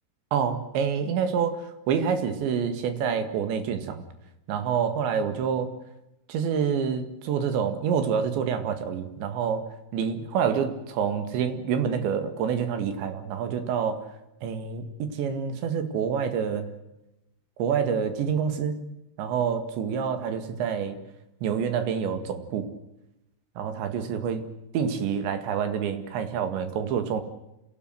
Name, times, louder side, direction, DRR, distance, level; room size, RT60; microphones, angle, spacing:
voice 1, 0.3-4.1 4.5-5.7 6.3-9.7 9.9-14.0 14.4-16.7 17.6-18.8 19.2-21.0 21.4-22.7 23.6-24.4 24.7-27.2, right 7 dB, 80° right, 8 dB, 4.3 m, -27 dB
27.5 x 17.5 x 7.9 m, 0.90 s
omnidirectional pair, 5.2 m